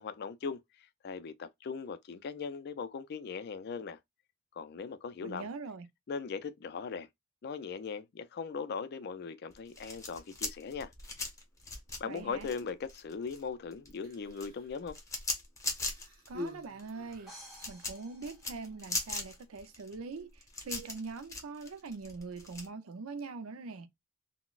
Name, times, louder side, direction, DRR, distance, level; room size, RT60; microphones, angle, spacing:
voice 1, 0.0-4.0 4.6-5.5 6.1-7.1 7.4-10.9 12.0-15.0, left 5 dB, 50° left, 0.4 m, -39 dB
voice 2, 5.2-5.9 12.0-12.5 16.3-17.3 17.7-23.9, right 4 dB, 85° right, 0.5 m, -43 dB
sound 1, 9.5-13.4 13.7-22.7, left 3 dB, 15° left, 0.9 m, -39 dB
Human voice, 13.9-14.8 15.7-17.6 18.6-18.7, left 1 dB, 45° right, 0.9 m, -46 dB
sound 2, 17.3-19.2, equal, ahead, 1.1 m, -53 dB
3.8 x 2.1 x 2.4 m
head